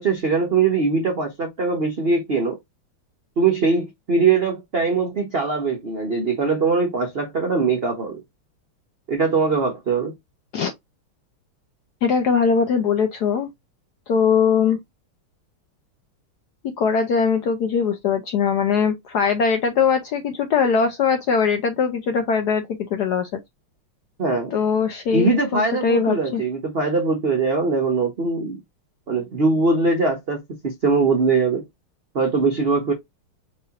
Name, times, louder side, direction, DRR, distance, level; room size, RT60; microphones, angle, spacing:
voice 1, 0.0-2.6 3.4-8.2 9.1-10.1 24.2-24.6 25.1-28.6 29.1-31.6 32.1-32.9, right 4 dB, 70° right, 0.5 m, -21 dB
voice 2, 12.0-13.5 14.1-14.8 16.8-22.6 22.9-23.3 24.5-26.4, left 6 dB, 70° left, 1.0 m, -21 dB
4.7 x 2.5 x 2.8 m
omnidirectional pair, 2.4 m